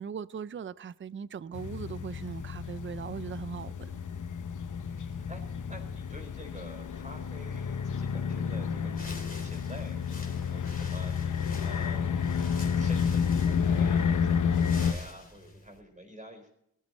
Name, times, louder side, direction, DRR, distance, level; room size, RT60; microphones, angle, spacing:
voice 1, 0.0-4.0, right 7 dB, 40° right, 0.5 m, -39 dB
sound 1, 1.5-14.9, left 6 dB, 70° left, 0.9 m, -30 dB
voice 2, 4.8-16.5, right 1 dB, 25° right, 4.1 m, -49 dB
sound 2, 8.9-15.8, left 2 dB, 25° left, 3.1 m, -48 dB
19.5 x 13.0 x 4.2 m
wide cardioid pair, 120°, 32 cm